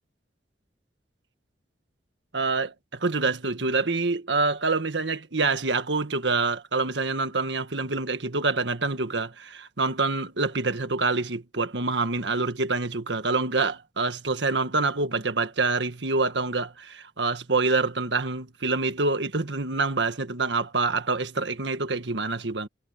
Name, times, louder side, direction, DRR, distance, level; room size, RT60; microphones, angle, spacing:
voice 1, 2.3-22.7, right 3 dB, 75° right, 1.6 m, -26 dB
head